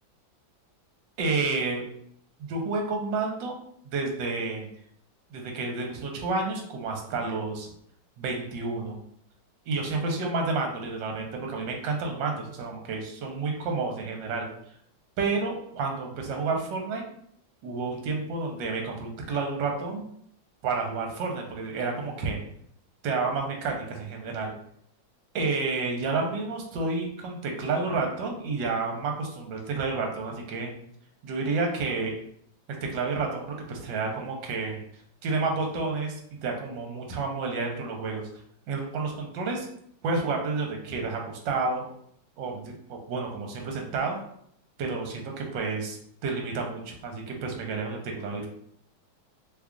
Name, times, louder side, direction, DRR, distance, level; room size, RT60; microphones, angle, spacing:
voice 1, 1.2-1.8 2.4-3.6 3.8-4.7 5.3-7.7 8.2-9.0 9.7-14.5 15.2-17.0 17.6-20.0 20.6-22.4 23.0-24.5 25.3-30.7 31.2-32.1 32.7-34.8 35.2-38.3 38.7-39.7 40.0-41.9 42.4-44.2 44.8-46.0 46.2-48.5, right 3 dB, 75° right, 2 dB, 1.4 m, -30 dB
3.1 x 2.4 x 3.6 m, 0.67 s
omnidirectional pair, 2.0 m